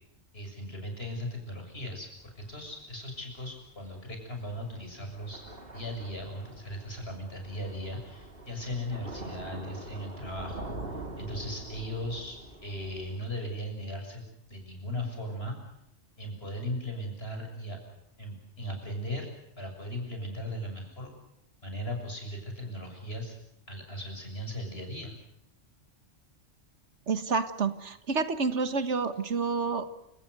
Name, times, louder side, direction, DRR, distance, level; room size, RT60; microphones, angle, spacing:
voice 1, 0.3-2.1 2.4-5.4 5.7-15.7 16.2-17.8 18.2-19.3 19.6-21.1 21.6-23.4 23.7-25.1, equal, 55° left, 3 dB, 7.1 m, -38 dB
Thunder / Rain, 2.2-13.2, right 2 dB, 50° right, 3.1 m, -44 dB
voice 2, 27.1-30.0, right 4 dB, 75° right, 11 dB, 1.7 m, -29 dB
29.0 x 18.0 x 8.1 m, 0.80 s
omnidirectional pair, 1.2 m